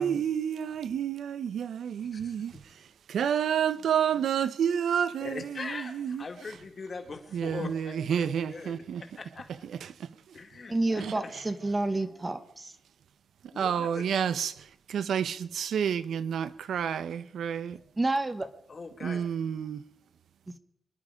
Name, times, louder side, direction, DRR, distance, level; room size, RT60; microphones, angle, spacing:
voice 1, 0.0-2.5 3.1-6.2 7.3-9.0 9.8-10.1 11.0-11.1 13.6-17.8 19.0-19.8, right 8 dB, 85° right, 0.7 m, -30 dB
voice 2, 2.1-2.6 5.2-9.5 10.3-11.3 13.5-14.0 18.7-19.2, left 4 dB, 35° left, 2.0 m, -41 dB
voice 3, 10.7-12.7 18.0-18.5, right 2 dB, 20° right, 1.0 m, -29 dB
25.5 x 11.0 x 5.0 m
wide cardioid pair, 160°, 0 cm